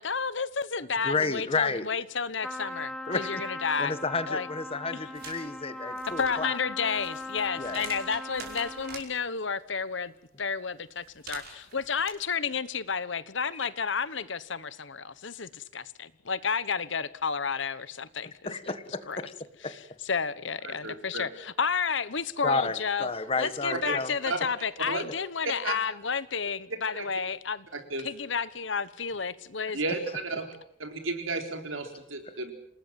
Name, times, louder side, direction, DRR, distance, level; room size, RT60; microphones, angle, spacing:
voice 1, 0.0-3.9 4.3-4.5 6.2-10.1 10.4-18.5 19.1-19.2 19.6-19.8 20.0-23.1 23.4-27.7 28.0-29.8, left 5 dB, 70° left, 16 dB, 1.1 m, -31 dB
voice 2, 1.0-1.9 3.1-3.3 3.8-6.6 7.6-7.8 18.4-19.3 19.6-19.7 22.4-24.1, left 3 dB, 30° left, 12 dB, 1.4 m, -31 dB
Trumpet, 2.4-9.1, left 2 dB, ahead, 2.7 m, -39 dB
sound 1, 5.1-5.4 5.9-9.1 11.0-12.1, right 5 dB, 50° right, 5.1 m, -45 dB
voice 3, 20.6-21.3 23.8-23.9 24.2-24.4 24.9-25.0 25.4-25.7 27.0-27.1 27.7-28.1 29.7-30.5 30.8-32.5, right 3 dB, 90° right, 5 dB, 4.3 m, -33 dB
28.0 x 19.0 x 7.6 m, 0.73 s
head